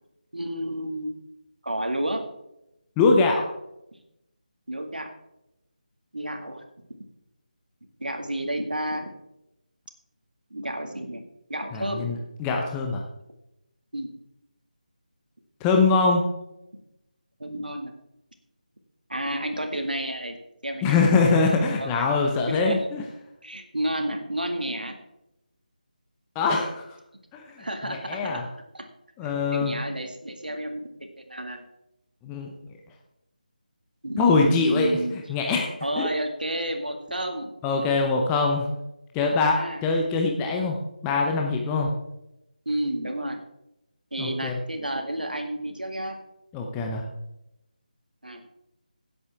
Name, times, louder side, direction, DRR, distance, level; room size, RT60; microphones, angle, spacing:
voice 1, 0.3-1.1 1.6-2.2 4.7-5.1 6.1-6.6 8.0-9.1 10.5-11.2 11.5-12.1 13.9-14.1 17.4-17.9 19.1-20.4 20.6-21.0 21.8-22.0 22.5-22.9 23.4-25.0 27.6-28.4 28.7-28.9 29.2-30.9 31.3-31.6 34.0-35.1 35.8-37.5 39.3-39.8 42.7-43.4 44.1-46.2 48.2-48.6, right 1 dB, 80° right, 4 dB, 1.9 m, -31 dB
voice 2, 3.0-3.5 11.7-13.0 15.6-16.2 20.8-23.0 26.3-26.8 27.3-27.4 27.9-28.4 29.2-29.8 32.2-32.5 34.2-34.9 35.3-35.7 36.0-36.1 37.6-38.7 39.1-40.8 41.0-41.9 44.2-44.6 46.5-47.0, left 4 dB, 10° left, 1 dB, 0.7 m, -23 dB
16.5 x 8.0 x 3.5 m, 0.87 s
figure-of-eight pair, 160°, 5 cm